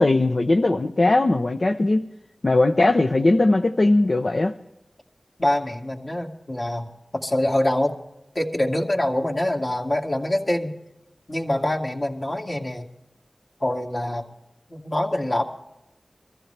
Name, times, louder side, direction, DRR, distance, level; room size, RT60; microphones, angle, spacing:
voice 1, 0.0-2.0 2.4-4.5, left 2 dB, 55° left, 5 dB, 0.7 m, -19 dB
voice 2, 5.4-8.0 8.3-10.7 11.3-12.9 13.6-14.2 14.7-15.4, left 1 dB, 40° left, 0 dB, 2.2 m, -25 dB
23.5 x 14.5 x 3.3 m, 0.90 s
wide cardioid pair, 65°, 0 cm